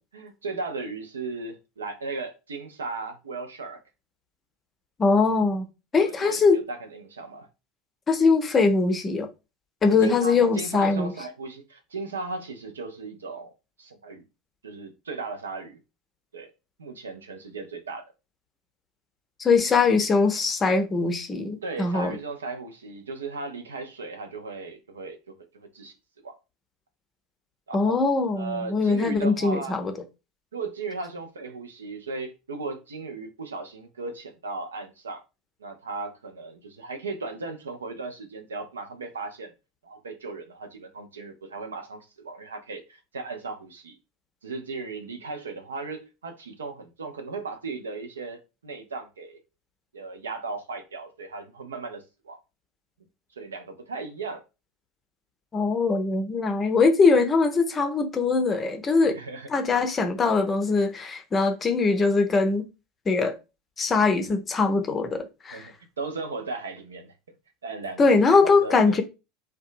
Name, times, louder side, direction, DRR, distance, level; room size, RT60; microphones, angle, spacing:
voice 1, 0.1-3.8 6.0-7.5 9.9-13.5 13.8-14.2 14.6-15.8 16.3-16.5 16.8-18.0 21.6-25.4 25.7-25.9 26.2-26.3 27.7-28.0 28.4-29.8 30.5-35.2 35.6-39.5 39.8-44.0 44.4-49.4 49.9-52.4 53.4-54.4 59.0-59.5 65.5-67.1 67.6-68.1 68.4-69.0, right 3 dB, 75° right, 0.5 m, -36 dB
voice 2, 5.0-5.7 5.9-6.6 8.1-9.3 9.8-11.1 19.4-22.1 27.7-29.9 55.5-59.2 59.5-62.7 63.1-63.3 63.8-65.7 68.0-69.0, left 4 dB, 25° left, 0.5 m, -22 dB
2.6 x 2.2 x 2.5 m
figure-of-eight pair, 75°, 0 cm